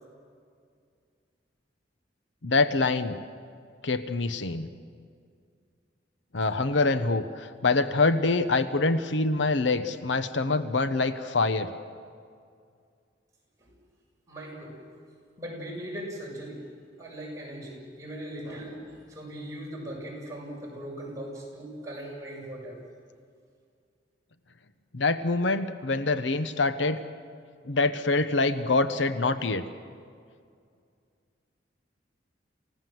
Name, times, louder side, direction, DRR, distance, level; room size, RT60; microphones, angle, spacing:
voice 1, 2.4-3.2 3.8-4.7 6.3-11.7 24.9-27.0 27.6-29.6, left 3 dB, 80° left, 11 dB, 1.0 m, -25 dB
voice 2, 14.3-14.8 15.4-16.6 17.0-22.8, right 1 dB, 20° right, -4 dB, 7.2 m, -39 dB
28.5 x 16.5 x 7.8 m, 2.2 s
head